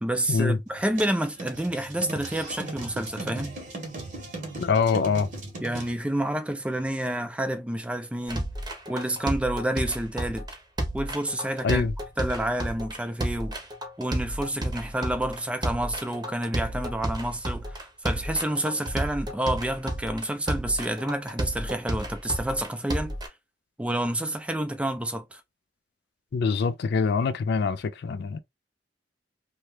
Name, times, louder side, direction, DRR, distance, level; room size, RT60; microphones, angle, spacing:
voice 1, 0.0-3.5 5.6-8.5 8.9-10.4 10.9-11.9 12.2-13.6 14.0-23.1 23.8-25.4, right 1 dB, 5° right, 0.4 m, -29 dB
sound 1, 0.7-5.9, right 2 dB, 45° right, 0.9 m, -38 dB
voice 2, 4.6-5.3 11.6-11.9 26.3-28.4, left 5 dB, 65° left, 0.4 m, -24 dB
sound 2, 8.3-23.3, right 1 dB, 25° right, 0.8 m, -31 dB
2.8 x 2.2 x 3.2 m
head